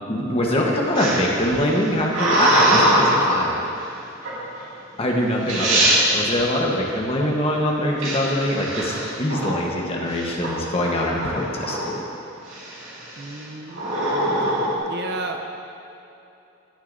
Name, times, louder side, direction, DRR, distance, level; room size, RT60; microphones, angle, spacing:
voice 1, 0.1-3.5 5.0-11.9, left 1 dB, 30° left, -1 dB, 1.1 m, -23 dB
sound 1, 0.9-3.5 4.2-4.6 5.2-5.3 5.5-6.0 8.0-9.7 10.1-10.5 10.8-12.0 12.5-12.9 13.7-14.8, right 1 dB, 80° right, 2.3 m, -22 dB
voice 2, 13.2-14.4 14.8-15.4, right 2 dB, 55° right, 3 dB, 0.7 m, -33 dB
16.5 x 6.5 x 2.7 m, 2.8 s
head